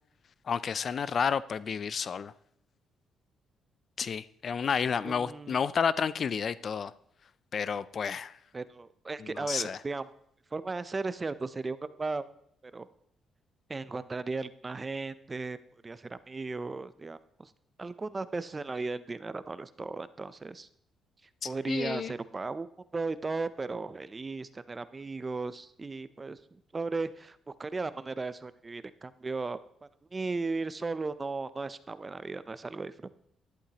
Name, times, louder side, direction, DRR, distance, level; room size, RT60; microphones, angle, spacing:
voice 1, 0.5-2.3 4.0-6.9 7.5-8.3 9.2-9.8 21.4-22.1, left 6 dB, 50° left, 17 dB, 0.4 m, -31 dB
voice 2, 5.0-5.6 8.5-10.0 10.5-12.3 12.6-12.9 13.7-15.6 15.8-17.5 17.8-20.7 21.4-22.7 22.9-33.1, right 3 dB, 25° right, 14 dB, 0.5 m, -36 dB
11.5 x 11.0 x 2.9 m, 0.71 s
cardioid pair, 90°, 0 cm